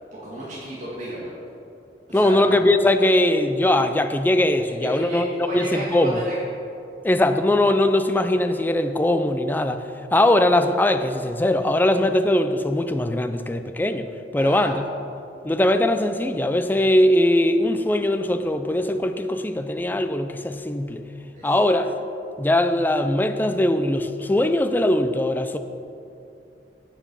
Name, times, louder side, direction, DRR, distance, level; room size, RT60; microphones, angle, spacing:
voice 1, 0.1-1.3 2.1-2.5 4.6-6.4 14.4-14.8 21.3-21.8, right 1 dB, 45° right, -8 dB, 1.8 m, -33 dB
voice 2, 2.1-5.3 5.5-6.2 7.0-9.8 10.1-14.8 15.4-21.0 21.4-21.9 22.4-25.6, left 1 dB, 10° left, 8 dB, 0.4 m, -20 dB
9.0 x 7.3 x 5.4 m, 2.6 s
head